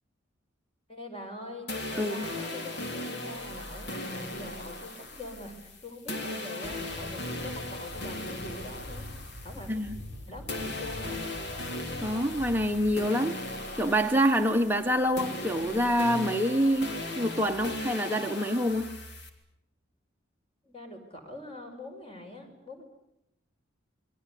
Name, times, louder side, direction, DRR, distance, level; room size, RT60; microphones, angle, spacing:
voice 1, 0.9-9.1 9.4-9.7 10.3-11.3 20.7-22.8, left 1 dB, 30° left, 4 dB, 5.5 m, -44 dB
sound 1, 1.7-10.2 10.5-19.3, left 2 dB, 55° left, 3.4 m, -38 dB
sound 2, 6.6-12.9, left 1 dB, 90° left, 6.5 m, -45 dB
voice 2, 12.0-13.4 13.7-18.9, equal, 10° right, 4 dB, 1.0 m, -26 dB
28.0 x 22.5 x 8.4 m, 0.79 s
head